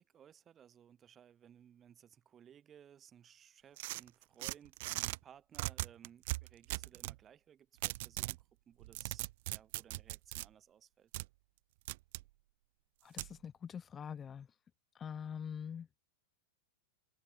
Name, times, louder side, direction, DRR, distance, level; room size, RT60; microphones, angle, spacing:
voice 1, 0.0-11.1, right 9 dB, 25° right, 6.5 m, -60 dB
sound 1, 3.8-5.2 5.5-7.2 7.8-8.4 8.8-10.5 11.1-11.3 11.9-12.2 13.2-13.3, right 20 dB, 55° right, 0.7 m, -39 dB
voice 2, 13.0-14.5 14.9-15.9, left 7 dB, 25° left, 1.1 m, -44 dB
hypercardioid pair, 95°, 0 cm